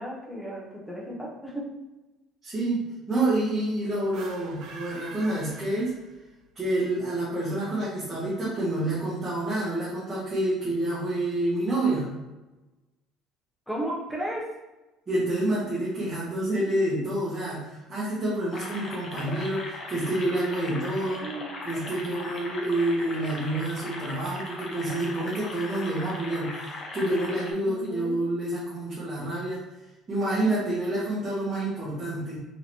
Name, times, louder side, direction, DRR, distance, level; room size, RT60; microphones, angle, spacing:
voice 1, 0.0-1.7 13.7-14.5 21.2-21.7 27.6-28.2, right 1 dB, 5° left, -5 dB, 1.0 m, -34 dB
voice 2, 2.4-5.9 6.5-12.1 15.1-21.2 21.6-29.6 30.1-32.4, right 1 dB, 15° right, -10 dB, 1.4 m, -28 dB
sound 1, 4.0-6.4, right 4 dB, 55° right, 1.0 m, -44 dB
sound 2, 18.5-27.5, left 2 dB, 30° left, 0.7 m, -38 dB
4.1 x 3.9 x 3.1 m, 1.0 s
cardioid pair, 160°, 0 cm